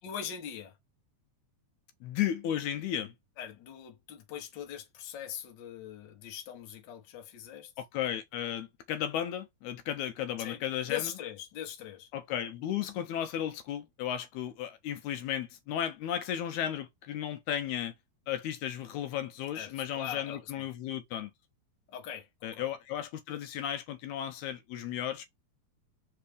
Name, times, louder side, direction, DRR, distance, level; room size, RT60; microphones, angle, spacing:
voice 1, 0.0-0.7 3.4-7.7 10.4-10.6 10.9-12.1 19.5-20.7 21.9-22.7, left 10 dB, 60° left, 1.2 m, -41 dB
voice 2, 2.0-3.1 7.8-11.1 12.1-17.9 18.3-21.3 22.4-25.2, left 10 dB, 80° left, 1.8 m, -34 dB
4.6 x 3.2 x 3.3 m
omnidirectional pair, 3.5 m